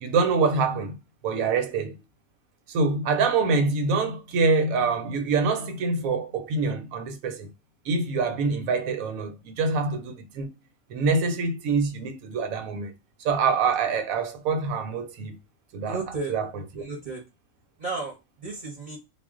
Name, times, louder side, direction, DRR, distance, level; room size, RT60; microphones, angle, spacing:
voice 1, 0.0-1.0 1.2-1.9 2.7-7.5 7.9-10.5 10.9-12.9 13.2-15.4 15.7-16.0 16.3-16.8, right 4 dB, 80° right, 1.0 m, -25 dB
voice 2, 15.8-16.3 16.8-17.2 17.8-18.1 18.4-19.0, right 3 dB, 45° right, 0.6 m, -33 dB
2.4 x 2.0 x 3.5 m
omnidirectional pair, 1.4 m